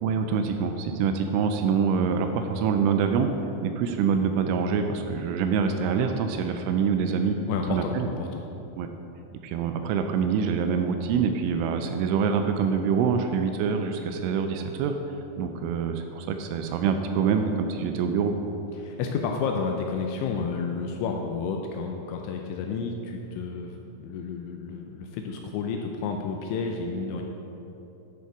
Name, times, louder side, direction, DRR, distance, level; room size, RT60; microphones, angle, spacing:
voice 1, 0.0-3.3 3.6-7.4 7.7-8.1 8.8-8.9 9.4-14.9 15.4-18.3, right 6 dB, 85° right, 6 dB, 2.9 m, -25 dB
voice 2, 7.5-8.4 18.8-27.2, left 5 dB, 85° left, 2 dB, 2.8 m, -31 dB
10.5 x 6.5 x 4.6 m, 3.0 s
omnidirectional pair, 5.8 m